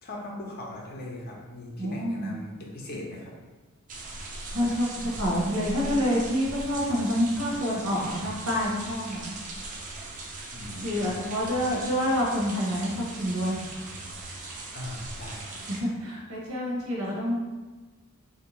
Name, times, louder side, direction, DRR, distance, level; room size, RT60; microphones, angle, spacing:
voice 1, 0.0-3.3 10.5-11.1 14.7-15.6 17.0-17.1, left 1 dB, 40° left, -1 dB, 0.6 m, -39 dB
voice 2, 1.8-2.3 4.5-9.3 10.8-13.6 15.8-17.4, equal, 70° right, -3 dB, 0.9 m, -27 dB
sound 1, 3.9-15.8, right 2 dB, 35° right, 0.4 m, -39 dB
3.4 x 2.6 x 3.0 m, 1.3 s
head